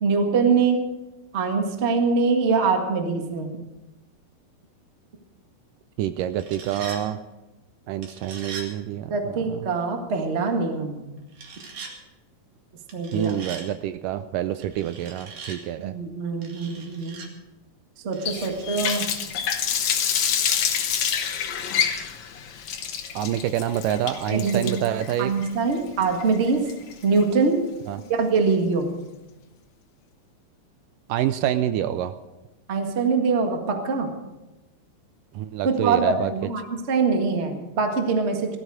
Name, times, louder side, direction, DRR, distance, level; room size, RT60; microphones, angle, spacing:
voice 1, 0.0-0.8 1.3-3.5 9.1-11.0 12.9-13.3 15.8-17.2 18.0-19.1 24.3-24.7 25.2-26.7 27.0-27.6 28.1-28.9 32.7-34.1 35.6-38.6, right 4 dB, 35° right, 3 dB, 1.0 m, -23 dB
voice 2, 6.0-7.2 7.9-9.7 13.1-15.9 23.2-25.3 27.9-28.0 31.1-32.1 35.3-36.3, right 11 dB, 80° right, 11 dB, 2.0 m, -27 dB
sound 1, 6.2-7.0 8.0-8.7 11.3-11.9 12.9-13.7 14.6-15.6 16.4-17.3 18.1-19.0, right 4 dB, 60° right, 3.3 m, -40 dB
Water tap faucet, 18.3-27.2, left 8 dB, 60° left, 2.1 m, -27 dB
17.5 x 13.5 x 4.9 m, 1.0 s
omnidirectional pair, 4.1 m